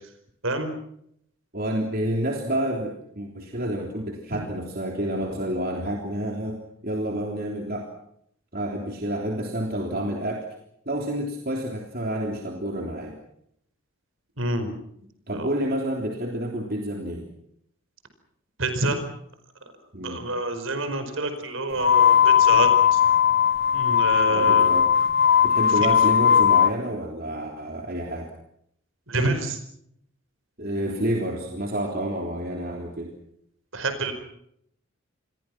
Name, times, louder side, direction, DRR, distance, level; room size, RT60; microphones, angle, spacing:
voice 1, 1.5-7.9 8.5-10.5 10.9-13.2 15.3-17.3 19.9-20.2 24.3-24.9 25.4-28.3 30.6-33.2, right 1 dB, 45° right, 1 dB, 3.4 m, -29 dB
voice 2, 14.4-14.7 15.3-15.5 18.6-19.0 20.0-23.0 23.7-24.7 29.1-29.6 33.7-34.1, right 2 dB, 70° right, 8 dB, 5.0 m, -27 dB
sound 1, 21.8-26.7, left 8 dB, 50° left, 1.0 m, -18 dB
29.0 x 21.5 x 6.1 m, 0.72 s
head